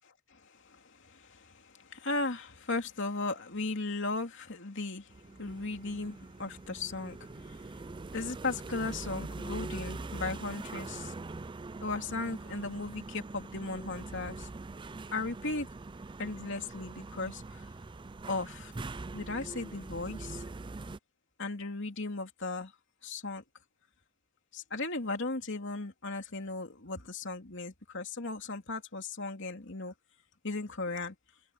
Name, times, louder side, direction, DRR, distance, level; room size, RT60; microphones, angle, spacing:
voice 1, 0.0-7.7 8.1-11.1 11.8-14.5 15.1-15.7 16.2-17.7 18.3-18.7 19.1-20.4 21.4-22.7 23.0-23.4 24.5-29.9 30.4-31.1, left 3 dB, 60° left, 3.0 m, -37 dB
sound 1, 5.1-21.0, right 3 dB, 25° right, 0.4 m, -43 dB
head